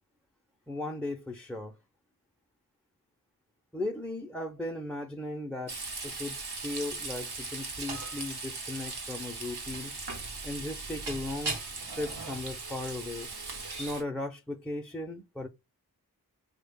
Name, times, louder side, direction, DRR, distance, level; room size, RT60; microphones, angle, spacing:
voice 1, 0.7-1.7 3.7-5.8 6.0-9.9 10.4-11.6 11.9-13.3 13.8-15.5, left 1 dB, 5° left, 0.5 m, -37 dB
Frying (food), 5.7-14.0, right 3 dB, 90° right, 0.9 m, -38 dB
3.2 x 2.2 x 3.5 m
cardioid pair, 40°, 38 cm